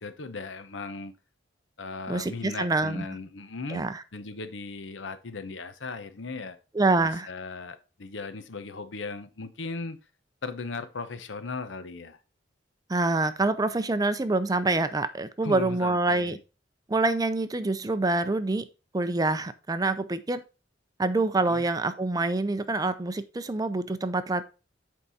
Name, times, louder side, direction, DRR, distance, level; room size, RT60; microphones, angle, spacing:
voice 1, 0.0-1.1 1.8-3.9 4.1-6.6 7.0-10.0 10.4-12.2 15.4-16.4 21.4-21.7, left 3 dB, 75° left, 0.8 m, -37 dB
voice 2, 2.1-3.1 3.7-4.0 6.8-7.3 12.9-16.4 16.9-18.7 18.9-20.4 21.0-24.4, right 2 dB, 20° right, 0.4 m, -26 dB
7.9 x 4.7 x 4.1 m
head